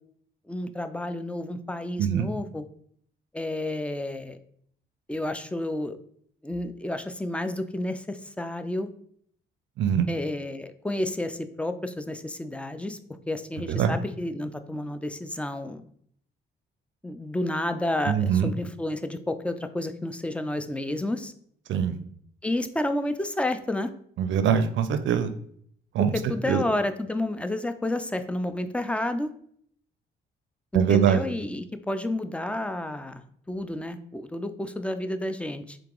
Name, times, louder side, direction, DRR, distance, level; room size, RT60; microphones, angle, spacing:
voice 1, 0.5-2.6 3.3-4.4 5.1-6.0 6.4-8.9 10.1-13.0 13.3-15.8 17.0-21.3 22.4-23.9 26.1-29.3 30.7-35.8, left 1 dB, 5° left, 9 dB, 0.3 m, -30 dB
voice 2, 18.1-18.5 21.7-22.0 24.2-25.3 25.9-26.1 26.5-26.6 30.7-31.2, right 8 dB, 70° right, 10 dB, 0.4 m, -22 dB
3.7 x 2.8 x 3.7 m, 0.64 s
cardioid pair, 90°, 20 cm